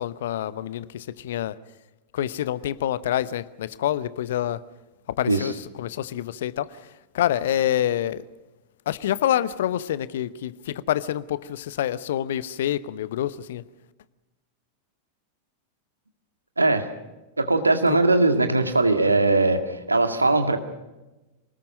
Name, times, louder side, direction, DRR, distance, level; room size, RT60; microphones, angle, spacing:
voice 1, 0.0-1.6 2.1-4.6 5.2-6.7 7.1-8.2 8.9-13.6, left 11 dB, 60° left, 18 dB, 0.8 m, -27 dB
voice 2, 16.6-16.9 17.4-20.6, right 2 dB, 80° right, 7 dB, 1.9 m, -20 dB
25.0 x 19.0 x 6.4 m, 1.1 s
figure-of-eight pair, 90°, 0 cm